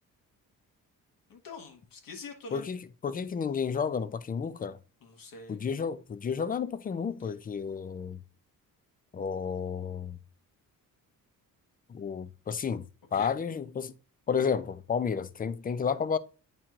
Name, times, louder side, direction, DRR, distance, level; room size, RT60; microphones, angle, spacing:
voice 1, 1.3-2.6 5.0-5.6 13.1-13.3, left 3 dB, 75° left, 1.4 m, -44 dB
voice 2, 2.5-4.8 5.5-8.2 9.1-10.2 11.9-12.9 13.1-13.9 14.3-16.2, left 6 dB, 25° left, 0.3 m, -31 dB
8.7 x 4.4 x 2.4 m
cardioid pair, 115°, 34 cm